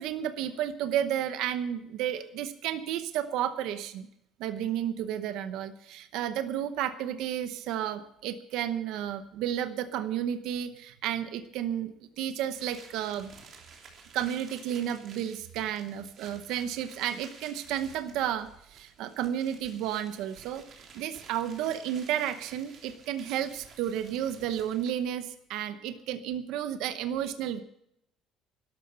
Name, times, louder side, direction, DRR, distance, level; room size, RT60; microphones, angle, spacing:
voice 1, 0.0-4.1 4.4-13.3 14.1-27.6, right 10 dB, 70° right, 10 dB, 0.9 m, -32 dB
sound 1, 12.5-25.1, right 5 dB, 40° right, 3.2 m, -53 dB
12.5 x 12.0 x 6.8 m, 0.77 s
cardioid pair, 165°, 0 cm